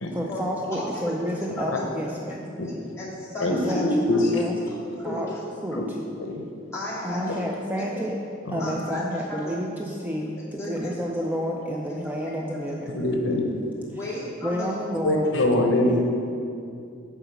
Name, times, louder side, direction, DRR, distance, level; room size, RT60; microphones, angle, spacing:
voice 1, 0.1-2.4 3.5-3.9 4.1-4.6 5.0-5.3 5.6-6.0 7.0-8.2 8.5-13.0 14.0-14.1 14.4-15.3 15.8-16.0, equal, 10° right, -1 dB, 0.4 m, -30 dB
voice 2, 0.7-1.1 1.6-1.8 2.6-3.8 4.1-4.3 4.7-5.2 6.7-7.4 7.7-7.9 8.6-9.6 10.2-10.3 10.6-10.9 12.7-12.8 13.8-14.8, left 2 dB, 15° left, -9 dB, 2.2 m, -35 dB
voice 3, 3.4-4.2 5.7-5.8 6.2-6.4 7.3-7.4 8.4-8.7 12.9-13.5 15.0-16.0, left 1 dB, 75° left, 2 dB, 0.8 m, -23 dB
7.0 x 4.8 x 6.9 m, 2.5 s
head